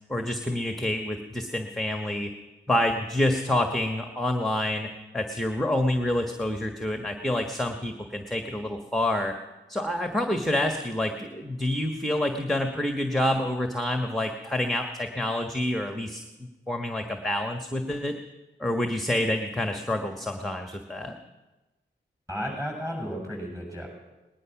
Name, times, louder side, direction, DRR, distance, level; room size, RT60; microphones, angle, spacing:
voice 1, 0.1-2.3 2.7-9.3 9.7-18.1 18.6-21.1, left 1 dB, ahead, 5 dB, 1.4 m, -28 dB
voice 2, 22.3-23.9, equal, 15° right, 2 dB, 7.2 m, -33 dB
19.0 x 11.0 x 6.0 m, 1.1 s
cardioid pair, 45°, 20 cm